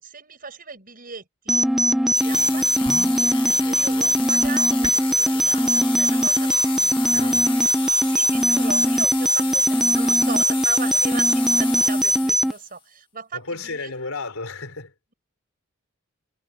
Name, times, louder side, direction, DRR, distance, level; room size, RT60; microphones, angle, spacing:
voice 1, 0.0-1.6 2.0-7.3 8.0-13.9, right 5 dB, 45° right, 6.6 m, -38 dB
sound 1, 1.5-12.5, equal, ahead, 0.6 m, -20 dB
sound 2, 2.1-12.7, left 6 dB, 25° left, 1.7 m, -33 dB
sound 3, 2.8-5.2, right 2 dB, 25° right, 1.6 m, -41 dB
voice 2, 7.1-7.6 13.3-14.9, left 3 dB, 80° left, 4.1 m, -33 dB
head